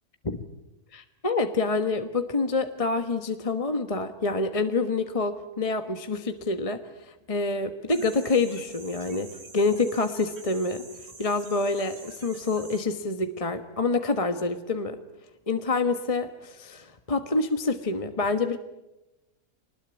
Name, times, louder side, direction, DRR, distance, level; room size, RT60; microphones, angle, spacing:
voice 1, 0.9-6.8 7.1-10.8 11.2-15.0 15.5-18.6, left 3 dB, 25° left, 8 dB, 1.3 m, -27 dB
sound 1, 7.9-12.8, right 3 dB, 90° right, 3.5 m, -47 dB
25.5 x 20.0 x 9.4 m, 0.99 s
omnidirectional pair, 1.6 m